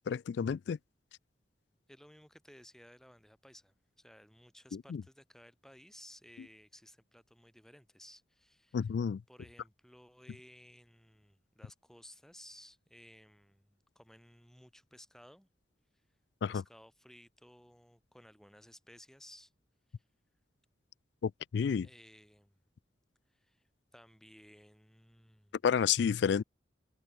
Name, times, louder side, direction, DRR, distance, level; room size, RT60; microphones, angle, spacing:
voice 1, 0.1-0.8 4.9-5.0 8.7-9.2 16.4-16.6 21.2-21.9 25.6-26.4, left 7 dB, 60° left, 0.3 m, -30 dB
voice 2, 1.9-8.9 9.3-15.5 16.5-19.5 21.8-22.6 23.3-25.6, equal, ahead, 5.5 m, -58 dB
head